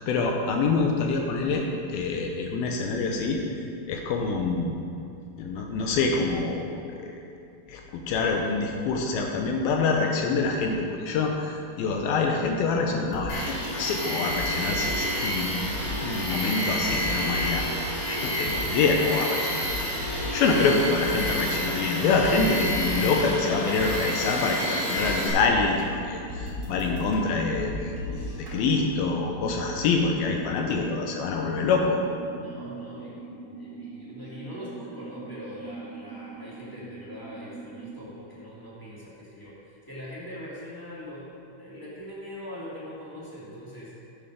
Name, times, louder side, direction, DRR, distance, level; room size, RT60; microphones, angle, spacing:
voice 1, 0.0-1.6 1.9-3.4 3.9-4.9 5.4-6.7 7.0-7.2 7.7-15.7 16.0-17.7 18.1-19.7 20.3-28.0 28.5-32.0, left 4 dB, 90° left, 2 dB, 2.1 m, -26 dB
sound 1, 12.5-29.0, left 2 dB, 20° right, 2.0 m, -38 dB
Tools, 13.3-25.3, equal, 45° left, 4.4 m, -29 dB
voice 2, 20.2-20.5 28.0-28.4 32.3-41.3 41.6-43.9, left 1 dB, 10° left, -9 dB, 1.2 m, -42 dB
sound 2, 24.7-38.0, right 4 dB, 40° right, 1.2 m, -43 dB
11.0 x 8.8 x 5.1 m, 2.5 s
omnidirectional pair, 5.4 m